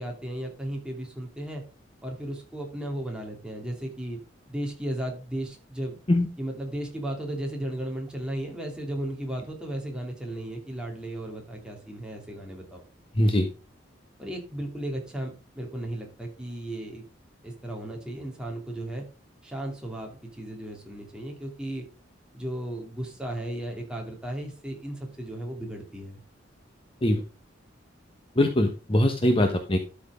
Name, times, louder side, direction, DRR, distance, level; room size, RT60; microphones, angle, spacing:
voice 1, 0.0-1.6 2.0-4.2 4.5-6.0 6.4-12.8 14.2-17.0 17.4-19.1 19.4-21.8 22.3-26.2, right 1 dB, 5° right, 0 dB, 2.8 m, -35 dB
voice 2, 13.2-13.5 27.0-27.2 28.4-29.8, left 1 dB, 30° left, 5 dB, 1.0 m, -22 dB
12.5 x 6.0 x 3.7 m, 0.34 s
head